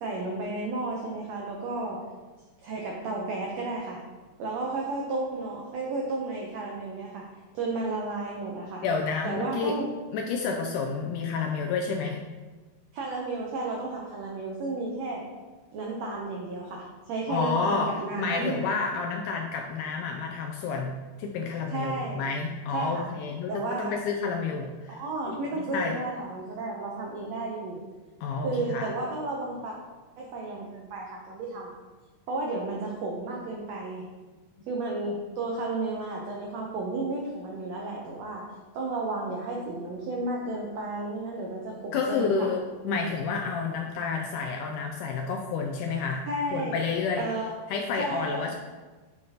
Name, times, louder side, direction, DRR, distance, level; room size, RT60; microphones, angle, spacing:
voice 1, 0.0-2.1 2.6-4.0 4.4-8.8 9.2-9.9 12.9-15.3 15.7-18.7 21.7-22.2 22.7-23.1 23.5-23.9 24.9-27.8 28.4-29.7 30.2-31.8 32.3-34.1 34.7-42.5 46.3-46.8 47.1-47.5 48.0-48.6, right 2 dB, 85° right, -1 dB, 1.5 m, -33 dB
voice 2, 8.8-9.8 10.1-12.2 17.3-25.0 25.3-25.9 28.2-28.9 41.9-46.3 46.5-47.3 47.7-48.6, left 5 dB, 85° left, 2 dB, 1.8 m, -30 dB
6.8 x 6.3 x 2.8 m, 1.3 s
omnidirectional pair, 4.0 m